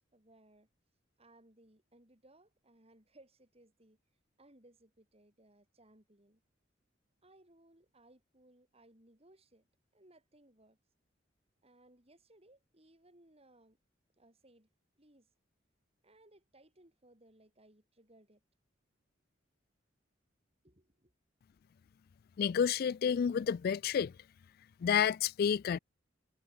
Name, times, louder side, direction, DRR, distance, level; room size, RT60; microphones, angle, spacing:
voice 1, 0.1-0.7 1.2-4.0 4.4-6.4 7.2-9.7 9.9-10.8 11.6-13.8 14.2-14.7 15.0-15.3 16.0-18.4 20.6-21.1, right 1 dB, 30° right, 7.1 m, -64 dB
voice 2, 22.4-24.1 24.8-25.8, left 7 dB, 50° left, 0.3 m, -30 dB
head